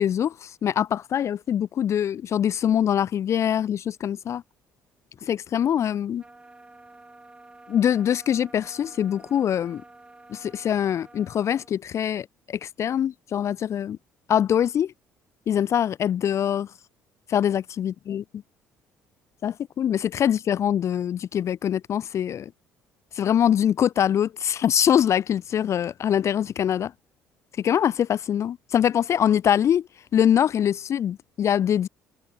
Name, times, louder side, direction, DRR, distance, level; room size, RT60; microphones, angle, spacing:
voice 1, 0.0-4.4 5.2-6.2 7.7-9.8 10.3-14.0 14.3-14.9 15.5-16.7 17.3-18.2 19.4-22.5 23.1-26.9 27.6-29.9 30.1-31.9, left 9 dB, 50° left, 0.3 m, -23 dB
sound 1, 6.2-11.7, right 2 dB, 15° right, 5.6 m, -50 dB
open air
supercardioid pair, 70°, 7 cm